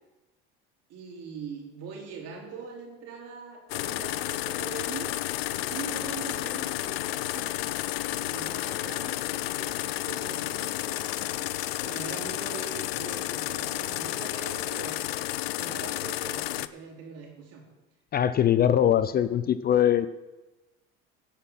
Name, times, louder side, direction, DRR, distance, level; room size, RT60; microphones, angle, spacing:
voice 1, 0.9-5.1 5.5-7.6 8.2-11.5 11.8-15.0 15.5-17.7, right 5 dB, 55° right, 0 dB, 3.5 m, -42 dB
sound 1, 3.7-16.7, left 15 dB, 90° left, 0.5 m, -31 dB
voice 2, 18.1-20.1, left 10 dB, 30° left, 14 dB, 0.4 m, -22 dB
17.0 x 5.7 x 5.7 m, 1.1 s
hypercardioid pair, 85°, 29 cm